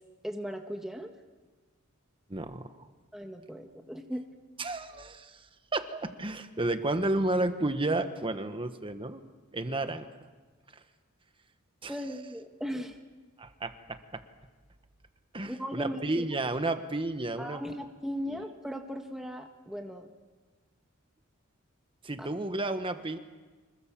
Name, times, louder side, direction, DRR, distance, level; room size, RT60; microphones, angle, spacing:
voice 1, 0.2-1.1 3.1-4.3 11.9-13.0 15.4-16.2 17.4-20.1 22.2-22.3, equal, ahead, 3 dB, 1.4 m, -38 dB
voice 2, 2.3-2.9 4.6-5.5 5.7-9.2 9.5-10.1 11.8-11.9 13.4-14.2 15.3-17.6 18.3-18.4 22.0-23.2, right 2 dB, 25° right, 9 dB, 1.3 m, -32 dB
25.5 x 21.0 x 7.5 m, 1.3 s
head